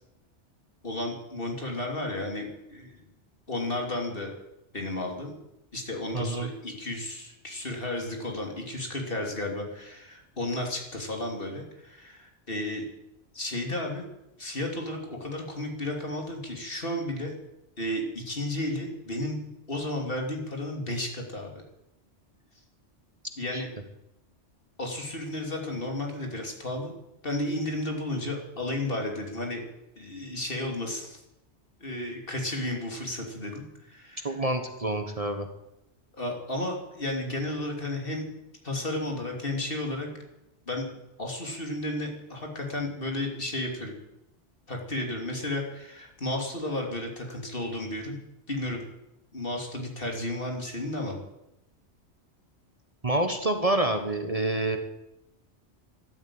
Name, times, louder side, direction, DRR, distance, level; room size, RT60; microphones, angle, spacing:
voice 1, 0.8-3.0 3.5-4.3 4.7-5.3 5.7-12.8 13.3-14.0 14.4-17.3 17.8-19.4 19.7-21.6 23.4-23.7 24.8-26.9 27.2-29.6 29.9-31.2 31.8-34.3 36.2-38.2 38.6-40.1 40.7-40.9 41.2-43.9 44.7-48.2 48.5-48.8 49.3-51.2, left 1 dB, 50° left, 1 dB, 3.3 m, -33 dB
voice 2, 6.1-6.5 23.5-23.6 34.2-35.5 53.0-54.8, right 2 dB, 30° right, 6 dB, 1.3 m, -27 dB
13.5 x 12.0 x 8.8 m, 0.90 s
omnidirectional pair, 1.2 m